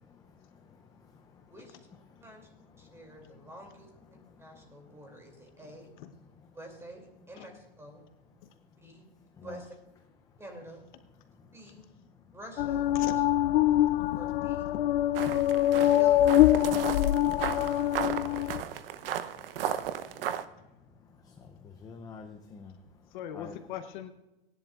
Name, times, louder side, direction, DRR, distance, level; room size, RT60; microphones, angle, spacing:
voice 1, 0.1-1.5 2.8-3.0 9.4-9.6 21.2-22.8 23.3-23.6, left 5 dB, 15° left, 4 dB, 0.5 m, -49 dB
voice 2, 2.8-3.9 4.4-5.9 6.5-8.0 8.8-9.1 9.4-9.8 10.4-10.9 11.5-11.9 12.3-13.2 14.1-14.6 15.7-16.9, right 1 dB, 10° right, 3 dB, 2.7 m, -48 dB
sound 1, 12.6-18.6, left 13 dB, 75° left, 0.5 m, -24 dB
voice 3, 13.7-14.2 17.3-17.4 23.1-24.1, left 10 dB, 55° left, 9 dB, 0.9 m, -40 dB
sound 2, 15.2-20.4, right 10 dB, 75° right, 0.8 m, -35 dB
18.5 x 10.5 x 2.4 m, 0.97 s
supercardioid pair, 140°, 29 cm